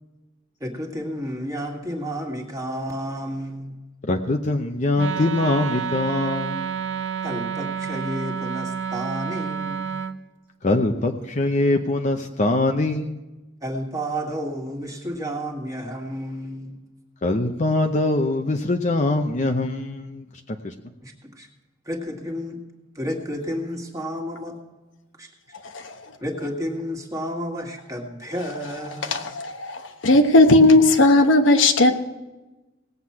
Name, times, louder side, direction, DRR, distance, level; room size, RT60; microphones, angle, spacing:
voice 1, 0.6-3.8 7.2-9.8 13.6-16.8 21.0-21.5 21.9-22.6 23.0-24.6 25.2-25.3 26.2-29.2, equal, 20° right, 1 dB, 1.9 m, -31 dB
voice 2, 4.0-6.8 10.6-13.2 17.2-20.7, left 2 dB, 40° left, 4 dB, 0.7 m, -23 dB
Wind instrument woodwind instrument, 5.0-10.2, right 7 dB, 75° right, 0.7 m, -29 dB
voice 3, 29.1-31.9, left 2 dB, 80° left, 6 dB, 1.1 m, -16 dB
18.0 x 8.1 x 5.8 m, 1.1 s
head